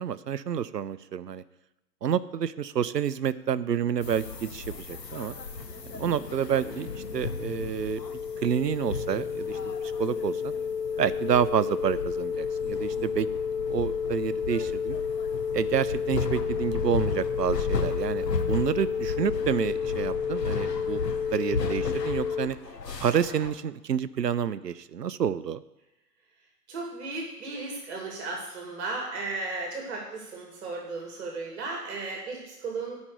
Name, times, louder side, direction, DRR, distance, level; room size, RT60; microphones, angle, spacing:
voice 1, 0.0-1.4 2.0-5.4 6.0-8.0 8.4-10.5 11.0-13.3 13.7-15.0 15.5-22.6 23.0-25.6, right 8 dB, 80° right, 16 dB, 0.7 m, -29 dB
sound 1, 4.0-23.5, left 4 dB, 85° left, 1.3 m, -36 dB
sound 2, 5.4-22.5, left 6 dB, 60° left, 0.9 m, -31 dB
voice 2, 26.7-33.0, right 3 dB, 45° right, 0 dB, 2.6 m, -35 dB
11.5 x 5.3 x 8.2 m, 0.99 s
figure-of-eight pair, 120°, 48 cm